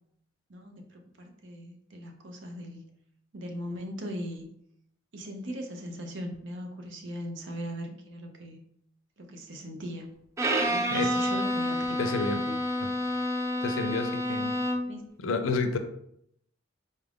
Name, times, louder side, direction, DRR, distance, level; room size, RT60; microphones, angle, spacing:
voice 1, 0.5-2.8 3.3-4.4 5.1-8.6 9.2-10.1 10.6-12.6 14.8-15.0, equal, 65° right, 4 dB, 0.7 m, -39 dB
Bowed string instrument, 10.4-15.0, equal, 15° right, 0.3 m, -29 dB
voice 2, 12.0-12.4 12.8-12.9 13.6-14.5 15.2-15.8, left 3 dB, 85° left, 7 dB, 0.5 m, -29 dB
4.1 x 2.4 x 3.4 m, 0.73 s
head